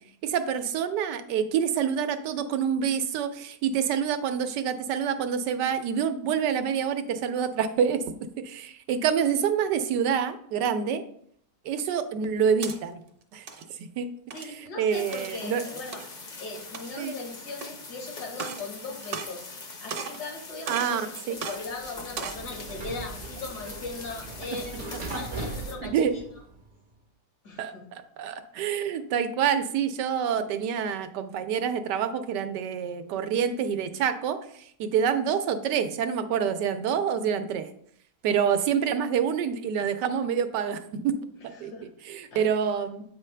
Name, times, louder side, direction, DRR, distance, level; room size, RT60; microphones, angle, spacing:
voice 1, 0.2-8.0 8.4-11.0 11.6-13.0 13.3-13.5 13.8-14.1 14.4-15.6 17.0-17.1 20.7-21.4 25.8-26.1 27.6-37.7 38.2-41.2 41.4-43.0, right 7 dB, 90° right, 9 dB, 1.3 m, -27 dB
sound 1, 12.3-12.8 13.3-13.6 14.3-14.6 15.1-15.4 15.9-16.1 16.6-17.1 17.6-17.7 18.3-18.7 19.0-19.6 19.9-20.2 20.7-21.0 21.4-21.6 22.0-22.4, right 6 dB, 70° right, 1.3 m, -36 dB
voice 2, 14.3-16.0 16.4-26.2 27.4-27.8 41.6-41.9 42.3-42.4, left 3 dB, 75° left, 1 dB, 2.0 m, -39 dB
sound 2, 14.9-25.8, left 3 dB, 40° left, 0.7 m, -43 dB
Sliding door, 21.6-26.8, right 3 dB, 45° right, 0.6 m, -39 dB
8.3 x 5.1 x 3.2 m, 0.66 s
omnidirectional pair, 1.8 m